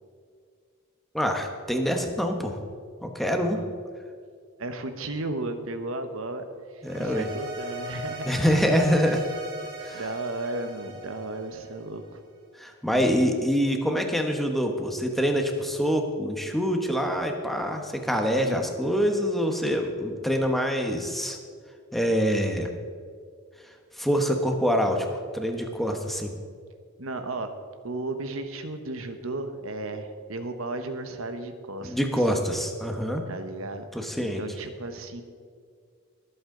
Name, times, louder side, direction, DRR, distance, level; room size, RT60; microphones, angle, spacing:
voice 1, 1.1-2.6 3.0-3.6 6.8-7.3 8.3-9.2 9.8-10.0 12.6-21.4 21.9-22.7 24.0-26.3 31.8-33.2 33.9-34.4, equal, ahead, 3 dB, 1.2 m, -25 dB
voice 2, 4.6-6.4 6.7-8.7 9.9-12.2 12.9-13.1 18.4-18.7 27.0-27.5 27.8-32.0 33.3-33.8 34.2-35.2, right 2 dB, 70° right, 8 dB, 1.1 m, -34 dB
sound 1, 6.8-12.2, right 2 dB, 50° right, 3.4 m, -39 dB
23.5 x 8.0 x 3.9 m, 2.1 s
head